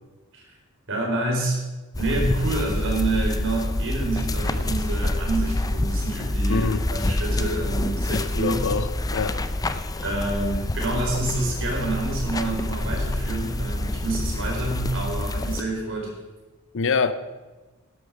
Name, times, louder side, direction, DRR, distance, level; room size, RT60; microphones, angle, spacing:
voice 1, 0.9-1.6 2.0-8.7 10.0-16.1, right 2 dB, 65° right, 0 dB, 4.2 m, -28 dB
sound 1, 1.9-15.6, left 1 dB, 15° left, 0.5 m, -27 dB
voice 2, 6.5-7.1 8.1-9.5 9.8-9.9 16.7-17.1, left 4 dB, 65° left, 12 dB, 0.7 m, -26 dB
12.0 x 11.5 x 4.9 m, 1.2 s
head